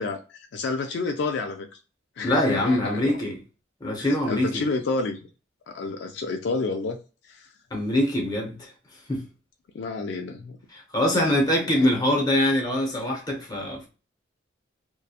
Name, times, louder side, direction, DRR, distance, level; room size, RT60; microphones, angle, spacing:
voice 1, 0.0-1.7 2.2-3.2 4.0-5.2 5.7-7.0 7.2-7.5 9.7-10.6 11.6-12.0, left 3 dB, 65° left, 0.3 m, -30 dB
voice 2, 2.2-3.4 3.8-4.6 7.7-8.7 9.1-9.2 10.7-13.9, left 1 dB, 20° left, 0.6 m, -23 dB
2.7 x 2.2 x 2.3 m
head